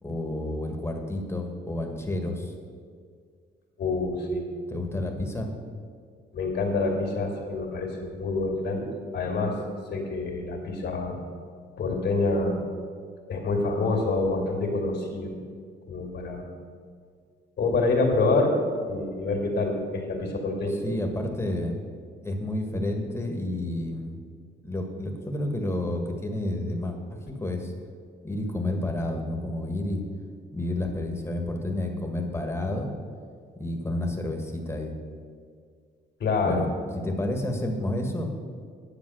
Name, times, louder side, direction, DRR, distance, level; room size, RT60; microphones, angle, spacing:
voice 1, 0.0-2.5 4.7-5.5 20.7-21.8 22.2-24.2 24.6-27.7 28.2-30.0 30.5-32.9 33.5-34.9 36.4-36.7 36.9-38.3, left 1 dB, 15° left, 3 dB, 1.7 m, -30 dB
voice 2, 3.8-4.4 6.3-8.9 9.1-9.6 9.9-11.2 11.8-12.6 13.3-15.4 15.9-16.4 17.6-18.5 18.8-20.8 36.2-36.7, left 3 dB, 60° left, 1 dB, 2.6 m, -26 dB
10.5 x 7.2 x 6.3 m, 2.1 s
cardioid pair, 90°, 20 cm